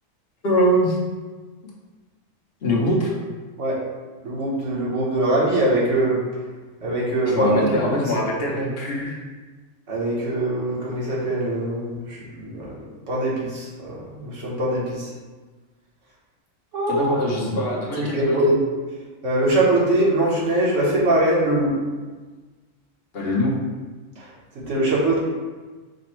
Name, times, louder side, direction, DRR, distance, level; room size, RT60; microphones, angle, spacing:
voice 1, 0.4-1.0 2.6-3.1 7.2-9.2 16.9-18.4 23.1-23.5, equal, 55° left, -3 dB, 0.9 m, -22 dB
voice 2, 4.2-6.2 6.8-7.6 9.9-12.8 13.1-15.1 16.7-17.1 18.1-18.5 19.2-21.8 24.5-25.2, right 1 dB, 75° right, -5 dB, 1.4 m, -22 dB
5.1 x 2.1 x 4.2 m, 1.3 s
omnidirectional pair, 1.3 m